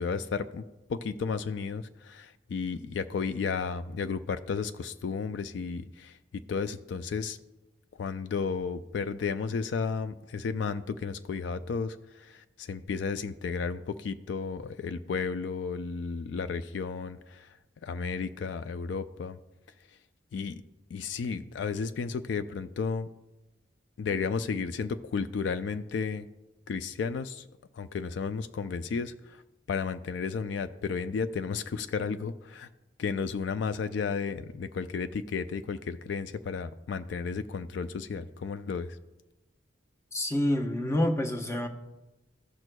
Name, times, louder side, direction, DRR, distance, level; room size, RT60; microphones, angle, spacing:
voice 1, 0.0-7.4 8.0-17.5 17.8-19.4 20.3-20.6 20.9-23.1 24.0-26.3 26.7-27.4 27.7-29.4 29.7-32.7 33.0-39.0, left 5 dB, 70° left, 11 dB, 0.3 m, -33 dB
voice 2, 40.1-41.7, left 1 dB, 15° left, 3 dB, 0.7 m, -27 dB
15.0 x 6.1 x 2.2 m, 1.0 s
head